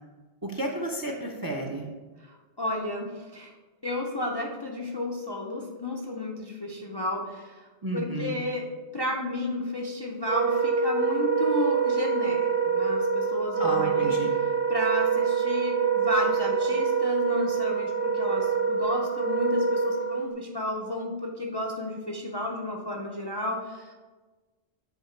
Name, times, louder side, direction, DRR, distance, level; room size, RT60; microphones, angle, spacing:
voice 1, 0.4-1.9 7.8-8.4 13.6-14.3, right 1 dB, 30° right, 2 dB, 0.4 m, -32 dB
voice 2, 2.2-3.6 3.8-23.9, left 1 dB, 35° left, -1 dB, 0.4 m, -32 dB
Wind instrument woodwind instrument, 10.2-20.3, right 5 dB, 65° right, 0.7 m, -25 dB
8.0 x 2.8 x 4.4 m, 1.3 s
omnidirectional pair, 1.1 m